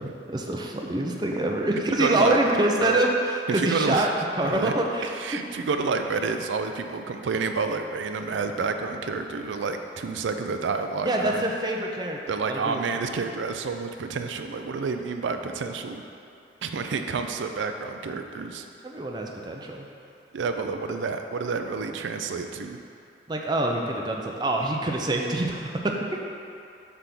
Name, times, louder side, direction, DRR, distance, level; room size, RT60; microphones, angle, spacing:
voice 1, 0.0-5.4 11.0-12.9 18.8-19.9 23.3-26.2, right 1 dB, 25° right, 0 dB, 0.5 m, -26 dB
voice 2, 2.0-2.4 2.8-3.0 3.5-4.1 4.4-4.7 5.0-11.4 12.3-16.0 16.6-18.7 20.3-22.8, right 4 dB, 85° right, 6 dB, 0.4 m, -29 dB
7.7 x 3.5 x 6.0 m, 2.6 s
head